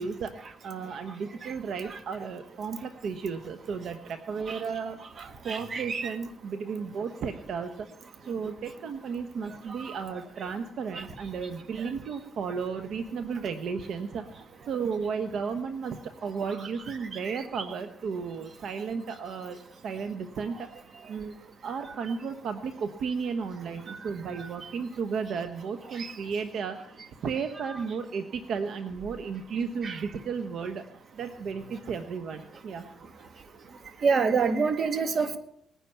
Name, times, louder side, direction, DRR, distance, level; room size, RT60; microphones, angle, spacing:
voice 1, 0.0-5.0 5.4-7.9 8.3-19.6 19.8-20.7 21.1-21.4 21.6-30.8 31.1-33.0, right 5 dB, 65° right, 7 dB, 1.1 m, -34 dB
voice 2, 5.5-6.1 10.9-11.0 17.3-17.4 23.9-24.0 26.0-26.1 29.8-30.0 34.0-35.4, right 5 dB, 50° right, 8 dB, 1.8 m, -27 dB
19.5 x 10.0 x 5.8 m, 0.74 s
cardioid pair, 90°, 0 cm